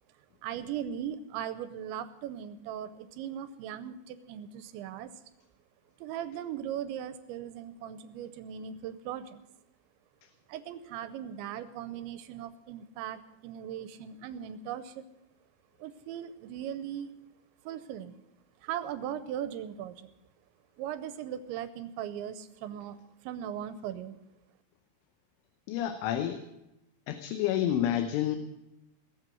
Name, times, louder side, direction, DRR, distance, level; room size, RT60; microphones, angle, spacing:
voice 1, 0.4-5.1 6.0-9.4 10.5-15.1 15.8-17.1 17.7-18.1 18.6-20.1 20.8-23.0 23.2-24.2, right 10 dB, 80° right, 12 dB, 2.9 m, -38 dB
voice 2, 25.7-26.4 27.1-28.4, left 11 dB, 80° left, 7 dB, 3.3 m, -29 dB
19.5 x 7.8 x 7.6 m, 0.92 s
omnidirectional pair, 5.6 m